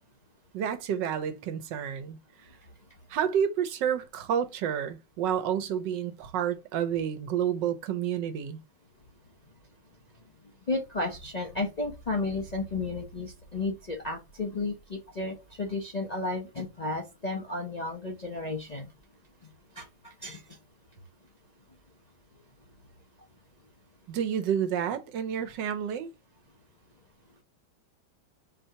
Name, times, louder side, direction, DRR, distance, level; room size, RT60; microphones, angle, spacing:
voice 1, 0.5-2.2 3.1-8.6 24.1-26.1, right 8 dB, 80° right, 1.4 m, -29 dB
voice 2, 10.7-18.9 19.7-20.4, left 3 dB, 55° left, 0.4 m, -33 dB
4.4 x 2.8 x 4.3 m
omnidirectional pair, 1.9 m